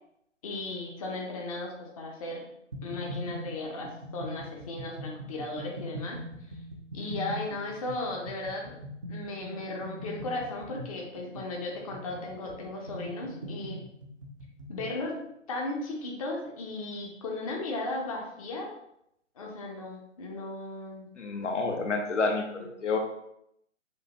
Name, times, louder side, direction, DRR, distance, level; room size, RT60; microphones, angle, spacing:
voice 1, 0.4-2.5 2.8-6.2 6.9-8.7 9.1-13.8 14.7-15.2 15.5-18.7 19.4-21.1, left 2 dB, 30° left, -1 dB, 0.6 m, -36 dB
sound 1, 2.7-15.0, equal, 25° right, 0.4 m, -41 dB
voice 2, 21.2-23.0, left 3 dB, 70° left, 4 dB, 0.9 m, -29 dB
6.5 x 2.4 x 2.9 m, 0.77 s
figure-of-eight pair, 140°, 38 cm